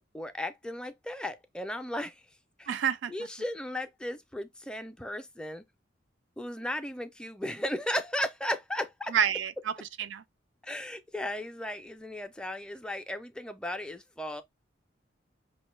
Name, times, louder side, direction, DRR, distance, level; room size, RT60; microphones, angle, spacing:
voice 1, 0.1-2.2 2.6-2.7 3.1-5.6 6.4-9.1 10.6-14.4, left 1 dB, 5° left, 0.4 m, -35 dB
voice 2, 2.7-3.1 9.1-10.2, right 8 dB, 75° right, 0.4 m, -29 dB
5.2 x 2.2 x 3.1 m
head